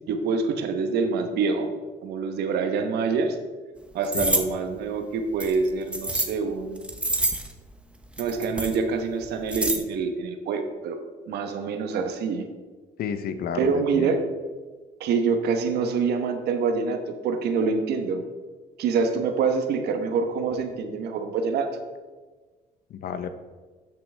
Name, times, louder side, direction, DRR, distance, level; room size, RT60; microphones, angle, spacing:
voice 1, 0.1-1.7 2.0-3.4 3.9-6.9 8.2-11.0 11.3-12.5 13.5-14.2 15.0-18.2 18.8-21.7, right 5 dB, 75° right, 6 dB, 1.0 m, -26 dB
sound 1, 4.0-4.4 5.4-6.3 6.8-7.5 8.2-8.8 9.2-9.8, right 1 dB, 5° right, 0.8 m, -26 dB
voice 2, 13.0-14.1 22.9-23.3, left 7 dB, 60° left, 10 dB, 0.7 m, -31 dB
12.0 x 6.1 x 3.4 m, 1.4 s
cardioid pair, 110°, 17 cm